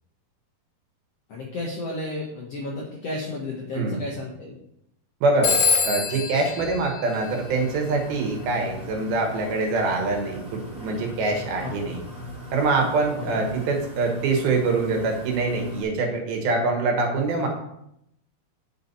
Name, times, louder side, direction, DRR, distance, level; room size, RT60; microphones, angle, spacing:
voice 1, 1.3-4.5 11.6-11.9 13.1-13.4, left 2 dB, 70° left, -2 dB, 1.5 m, -33 dB
voice 2, 5.2-5.6 5.8-12.0 12.5-17.5, right 3 dB, 75° right, 2 dB, 3.2 m, -24 dB
Telephone, 5.4-7.9, left 5 dB, 90° left, 3.2 m, -25 dB
sound 1, 7.2-15.8, left 1 dB, 25° right, 1.4 m, -40 dB
8.8 x 5.3 x 4.1 m, 0.77 s
omnidirectional pair, 4.3 m